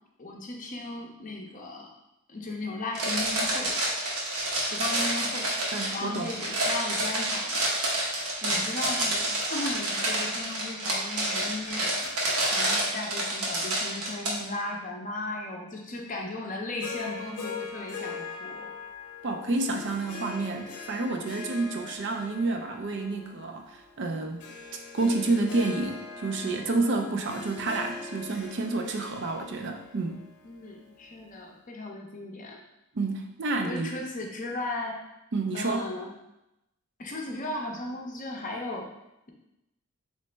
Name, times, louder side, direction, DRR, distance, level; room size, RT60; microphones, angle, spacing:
voice 1, 0.2-1.9 2.3-3.8 4.7-5.5 5.9-7.7 8.4-12.0 12.5-18.7 30.4-32.6 33.6-35.0 35.5-36.1 37.0-38.9, left 2 dB, 35° left, 0 dB, 0.6 m, -36 dB
sound 1, 2.9-14.3, right 1 dB, 80° right, 1.1 m, -28 dB
voice 2, 5.7-6.3 19.2-24.4 24.9-30.2 32.9-33.9 35.3-35.8, right 3 dB, 50° right, 3 dB, 0.4 m, -29 dB
Harp, 16.8-31.2, left 4 dB, 90° left, 0.7 m, -41 dB
3.9 x 3.1 x 3.3 m, 0.90 s
head